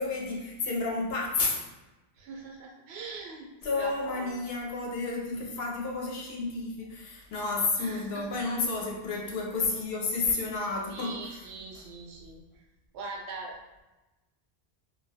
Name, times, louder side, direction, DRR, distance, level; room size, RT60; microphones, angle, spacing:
voice 1, 0.0-1.6 3.6-11.4, left 3 dB, 70° left, -2 dB, 0.8 m, -31 dB
voice 2, 2.2-4.4 7.8-8.4 9.2-9.3 10.9-12.4 12.9-13.6, right 3 dB, 85° right, -1 dB, 0.8 m, -41 dB
2.2 x 2.2 x 2.6 m, 1.1 s
omnidirectional pair, 1.1 m